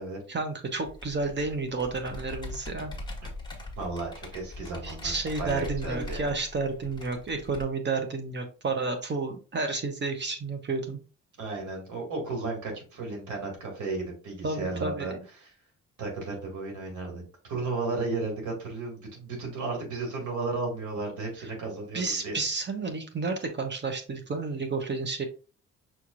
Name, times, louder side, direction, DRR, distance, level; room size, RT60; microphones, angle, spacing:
voice 1, 0.3-2.9 4.8-11.0 14.4-15.2 21.9-25.2, right 3 dB, 35° right, 5 dB, 0.9 m, -31 dB
Computer keyboard, 0.9-7.6, left 2 dB, 15° left, 1.4 m, -41 dB
voice 2, 3.5-6.3 11.4-15.1 15.4-15.5 16.0-17.2 17.5-22.4, right 3 dB, 75° right, 1 dB, 2.2 m, -34 dB
5.8 x 2.9 x 2.5 m, 0.36 s
cardioid pair, 90°, 30 cm